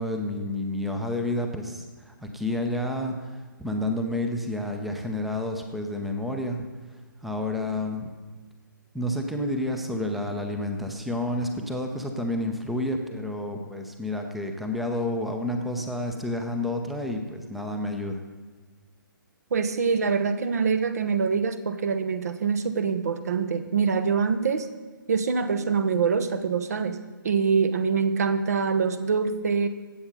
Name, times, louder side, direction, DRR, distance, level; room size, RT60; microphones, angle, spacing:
voice 1, 0.0-8.1 8.9-18.2, left 1 dB, ahead, 4 dB, 0.7 m, -30 dB
voice 2, 19.5-24.7 25.1-27.0 27.2-29.7, right 5 dB, 45° right, 11 dB, 0.9 m, -24 dB
15.5 x 8.0 x 5.4 m, 1.4 s
figure-of-eight pair, 135°, 11 cm